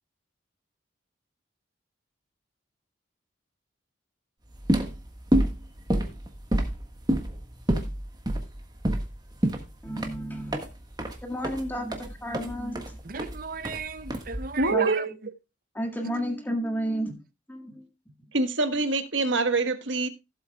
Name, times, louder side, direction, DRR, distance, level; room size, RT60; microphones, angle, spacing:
sound 1, 4.5-14.7, right 1 dB, 20° right, 1.4 m, -28 dB
voice 1, 9.8-10.6 11.2-13.0 14.7-14.9 15.7-17.2 17.5-17.9, equal, 10° left, 1.8 m, -31 dB
voice 2, 13.0-15.1 16.0-16.1, right 4 dB, 45° right, 0.6 m, -34 dB
voice 3, 14.6-15.1 18.3-20.1, right 3 dB, 75° right, 1.4 m, -25 dB
16.0 x 7.9 x 2.3 m
head